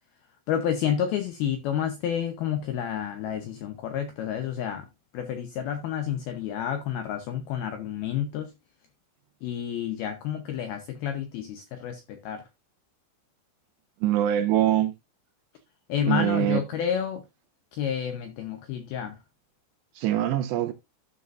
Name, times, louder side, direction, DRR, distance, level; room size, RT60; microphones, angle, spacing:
voice 1, 0.5-4.9 5.1-8.5 9.4-12.5 15.9-17.3 17.7-19.2, left 9 dB, 85° left, 2.1 m, -30 dB
voice 2, 14.0-14.9 16.1-16.6 19.9-20.7, right 12 dB, 80° right, 2.5 m, -23 dB
13.0 x 6.8 x 2.5 m
omnidirectional pair, 5.7 m